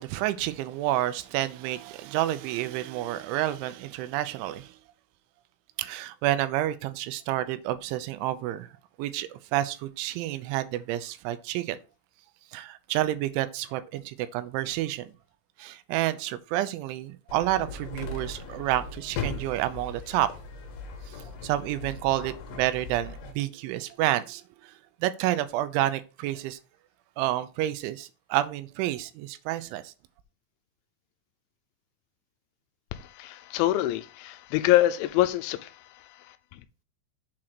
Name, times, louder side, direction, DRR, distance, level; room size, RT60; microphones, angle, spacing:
voice 1, 0.0-4.8 5.8-8.7 9.0-11.8 12.5-15.1 15.6-20.3 21.1-21.2 21.4-24.7 25.0-26.6 27.2-29.9, right 14 dB, 85° right, 3.0 m, -29 dB
sound 1, 17.3-23.3, left 4 dB, 65° left, 3.0 m, -38 dB
voice 2, 32.9-36.6, left 15 dB, 85° left, 3.0 m, -26 dB
7.6 x 3.8 x 5.9 m
omnidirectional pair, 5.5 m